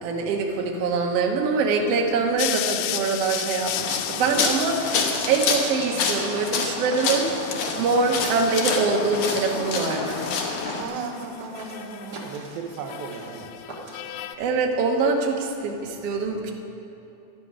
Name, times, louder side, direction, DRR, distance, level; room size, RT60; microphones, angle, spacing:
voice 1, 0.0-10.2 14.4-16.5, right 4 dB, 65° right, 1 dB, 1.6 m, -24 dB
sound 1, 2.4-5.9 6.9-10.7 10.9-12.4 12.7-14.4, left 13 dB, 85° left, 2.4 m, -35 dB
sound 2, 3.7-10.8, left 5 dB, 65° left, 2.2 m, -27 dB
sound 3, 5.9-14.3, right 1 dB, 45° right, 1.3 m, -43 dB
voice 2, 10.7-13.5, right 4 dB, 80° right, 3 dB, 2.7 m, -35 dB
13.0 x 10.5 x 6.1 m, 2.9 s
omnidirectional pair, 4.3 m